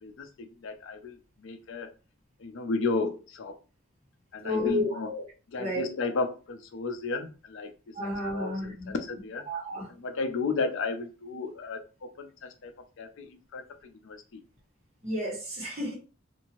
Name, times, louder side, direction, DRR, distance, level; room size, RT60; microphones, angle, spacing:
voice 1, 0.0-1.9 2.4-3.6 4.3-5.1 5.5-7.9 8.3-9.4 9.9-14.4, left 4 dB, 65° left, 7 dB, 0.4 m, -34 dB
voice 2, 4.4-5.2 5.6-5.8 7.9-8.9 9.5-9.9 15.0-15.9, left 1 dB, 30° right, -3 dB, 1.3 m, -31 dB
2.7 x 2.5 x 2.9 m, 0.34 s
head